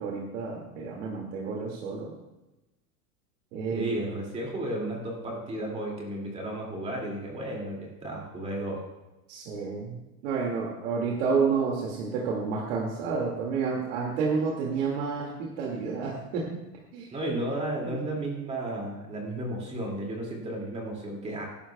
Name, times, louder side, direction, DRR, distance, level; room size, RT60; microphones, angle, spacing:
voice 1, 0.0-2.1 3.5-3.9 9.3-16.6 16.9-17.1 17.8-18.2, right 5 dB, 55° right, -2 dB, 2.3 m, -30 dB
voice 2, 3.7-8.9 17.1-21.5, right 1 dB, 15° right, -1 dB, 2.4 m, -33 dB
20.0 x 11.5 x 2.3 m, 1.0 s
supercardioid pair, 165°, 45 cm